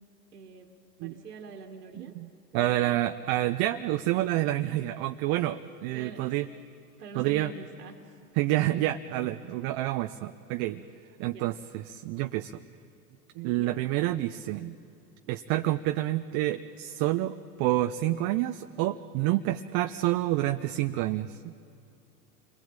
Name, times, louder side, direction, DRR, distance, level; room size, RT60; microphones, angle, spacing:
voice 1, 0.3-0.7 1.0-2.2 2.5-2.9 5.9-6.5 7.0-8.2 11.2-11.5 13.6-13.7, right 4 dB, 85° right, 2 dB, 2.1 m, -46 dB
voice 2, 1.9-6.5 7.1-7.5 8.4-10.8 11.2-12.6 13.4-14.8 15.3-21.5, right 15 dB, 50° right, 8 dB, 0.9 m, -28 dB
28.5 x 21.0 x 8.9 m, 2.7 s
hypercardioid pair, 85°, 46 cm